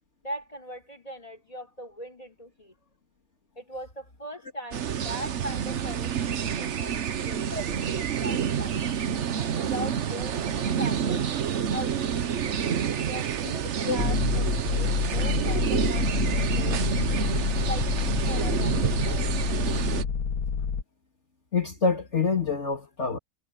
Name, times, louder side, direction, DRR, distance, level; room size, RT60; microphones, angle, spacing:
voice 1, 0.2-2.8 3.6-9.0 9.6-11.3 11.7-16.8 17.3-19.3, equal, 25° left, 5.9 m, -40 dB
sound 1, 4.7-20.0, right 8 dB, 55° right, 1.1 m, -28 dB
sound 2, 14.0-20.8, left 6 dB, 80° left, 1.7 m, -27 dB
voice 2, 21.5-23.2, left 5 dB, 50° left, 2.8 m, -26 dB
omnidirectional pair, 1.5 m